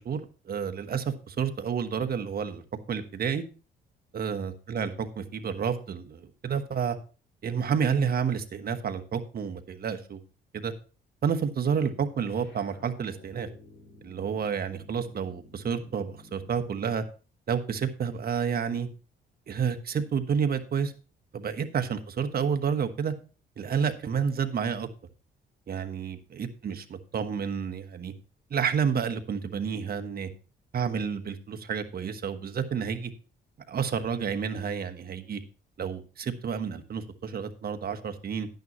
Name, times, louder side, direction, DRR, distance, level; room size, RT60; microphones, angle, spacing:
voice 1, 0.0-2.6 2.9-3.4 4.1-7.0 7.4-10.2 10.5-10.7 11.2-13.5 14.0-17.0 17.5-18.9 19.5-20.9 21.3-23.1 23.6-24.9 25.7-28.1 28.5-30.3 30.7-33.1 33.7-35.4 35.8-38.5, right 7 dB, 50° right, 8 dB, 1.3 m, -30 dB
sound 1, 12.1-16.8, left 2 dB, 65° left, 5.4 m, -53 dB
10.5 x 9.3 x 3.1 m, 0.36 s
cardioid pair, 90°, 20 cm